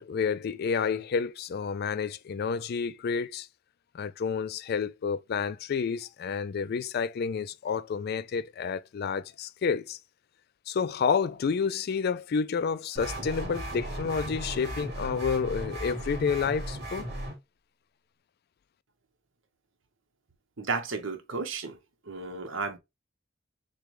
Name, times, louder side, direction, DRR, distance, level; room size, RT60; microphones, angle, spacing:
voice 1, 0.0-3.5 3.9-10.0 10.7-17.1, left 6 dB, 55° left, 0.3 m, -30 dB
sound 1, 13.0-17.3, right 1 dB, 60° right, 2.6 m, -36 dB
voice 2, 20.6-21.8 22.1-22.8, right 4 dB, 80° right, 1.1 m, -33 dB
6.8 x 2.3 x 3.2 m
head